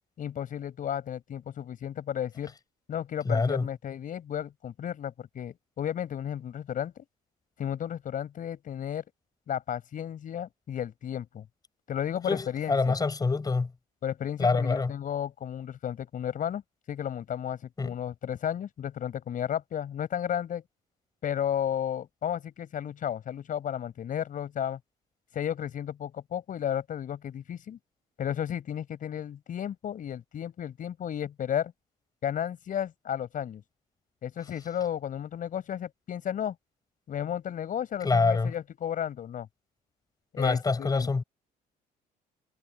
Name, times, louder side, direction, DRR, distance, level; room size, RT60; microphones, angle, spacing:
voice 1, 0.2-2.5 2.9-7.0 7.6-9.0 9.5-11.5 11.9-13.0 14.0-16.6 16.9-20.6 21.2-24.8 25.3-27.8 28.2-31.7 32.2-33.6 34.2-36.6 37.1-39.5 40.3-41.1, left 9 dB, 55° left, 5.6 m, -33 dB
voice 2, 3.2-3.7 12.3-13.7 14.4-14.9 17.8-17.9 38.0-38.5 40.4-41.2, left 4 dB, 20° left, 4.8 m, -25 dB
cardioid pair, 110°, 17 cm